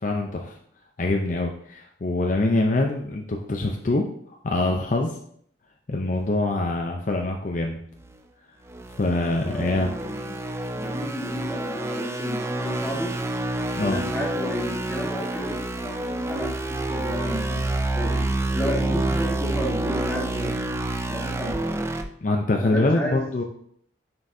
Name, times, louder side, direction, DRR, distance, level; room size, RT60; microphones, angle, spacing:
voice 1, 0.0-0.5 1.0-5.1 5.9-7.8 9.0-9.9 13.8-14.0 22.2-23.4, left 2 dB, 45° left, 1 dB, 0.6 m, -24 dB
sound 1, 8.0-8.2 8.7-22.0, right 2 dB, 15° right, 0.4 m, -28 dB
voice 2, 9.4-10.4 10.7-13.1 13.8-18.2 18.5-20.5 21.1-21.5 22.6-23.2, equal, 5° left, -3 dB, 1.5 m, -32 dB
9.5 x 4.5 x 2.7 m, 0.64 s
head